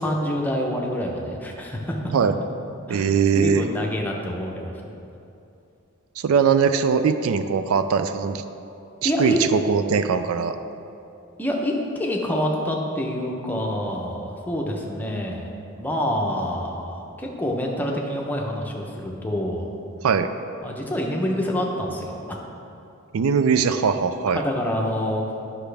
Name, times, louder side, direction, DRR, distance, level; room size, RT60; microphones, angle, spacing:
voice 1, 0.0-2.0 2.9-3.1 3.3-4.7 9.0-9.4 11.4-15.5 15.8-19.7 20.6-22.4 24.3-25.2, equal, 10° left, -1 dB, 0.7 m, -26 dB
voice 2, 2.9-3.6 6.2-8.4 9.0-10.6 20.0-20.3 23.1-24.4, right 6 dB, 75° right, 10 dB, 0.4 m, -21 dB
10.0 x 5.8 x 3.3 m, 2.7 s
head